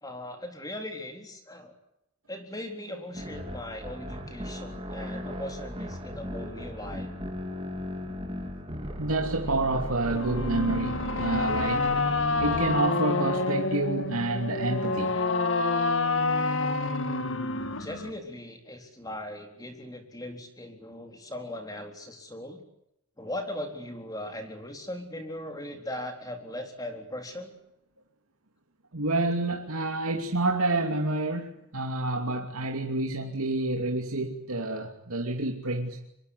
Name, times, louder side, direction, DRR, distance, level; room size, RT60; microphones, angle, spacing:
voice 1, 0.0-1.7 2.3-7.1 17.8-22.6 23.2-27.5, left 1 dB, 15° left, 4 dB, 3.9 m, -39 dB
sound 1, 3.1-12.8, equal, 25° right, 3.7 m, -37 dB
voice 2, 9.0-11.9 12.4-15.1 28.9-36.0, right 2 dB, 90° right, 2 dB, 2.8 m, -28 dB
sound 2, 10.1-18.1, left 3 dB, 60° left, 2.2 m, -28 dB
25.5 x 23.0 x 8.3 m, 0.80 s
head